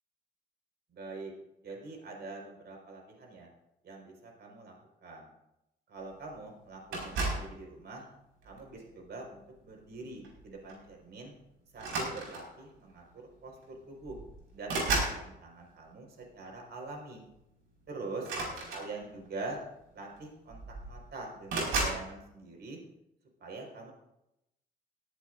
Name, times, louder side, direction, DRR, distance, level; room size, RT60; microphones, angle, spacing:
voice 1, 0.9-1.3 1.6-3.5 3.8-4.7 5.0-5.3 5.9-8.0 8.4-11.3 11.7-14.2 14.5-17.2 17.9-18.3 18.7-19.6 19.9-22.8 23.4-23.9, right 3 dB, 60° right, 0 dB, 4.7 m, -44 dB
sound 1, 6.9-7.5 8.4-8.7 10.2-10.4 10.7-10.9 11.7-12.6 13.6-13.7 14.0-15.2 18.2-19.3 20.2-20.3 20.5-21.0 21.5-22.0, right 2 dB, 90° right, 5.0 m, -33 dB
18.0 x 15.0 x 2.6 m, 0.86 s
cardioid pair, 90°, 20 cm